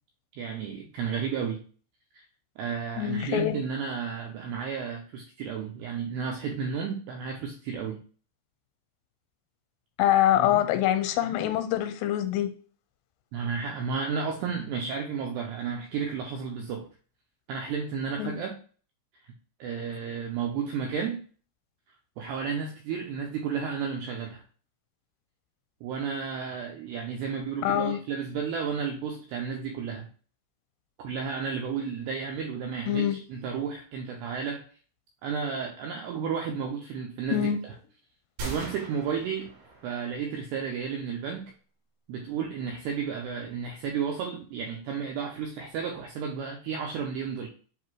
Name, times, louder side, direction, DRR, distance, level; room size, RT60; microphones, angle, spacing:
voice 1, 0.4-1.6 2.1-2.2 2.6-8.0 10.3-10.6 13.3-16.9 17.5-18.6 19.6-21.2 22.2-24.4 25.8-30.1 31.0-34.6 35.2-37.7 38.4-39.5 39.8-41.5 42.1-47.5, right 6 dB, 85° right, 2.3 m, -32 dB
voice 2, 3.0-3.6 10.0-12.5 18.2-18.4 27.6-28.0 32.9-33.2 37.3-37.6, left 12 dB, 85° left, 3.0 m, -25 dB
sound 1, 38.4-40.3, right 3 dB, 60° right, 3.7 m, -39 dB
7.7 x 2.7 x 4.6 m
omnidirectional pair, 5.7 m